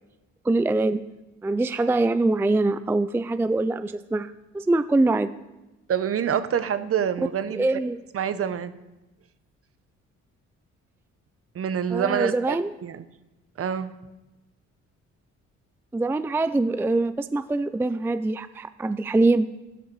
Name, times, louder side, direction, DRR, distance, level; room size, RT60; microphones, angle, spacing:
voice 1, 0.5-1.0 1.4-5.3 7.5-8.0 11.9-12.7 15.9-19.5, right 2 dB, 10° right, 12 dB, 0.3 m, -23 dB
voice 2, 5.9-7.8 8.1-8.7 11.5-13.0 13.6-13.9, right 8 dB, 50° right, 13 dB, 0.8 m, -26 dB
12.5 x 12.0 x 4.7 m, 1.0 s
cardioid pair, 90°, 30 cm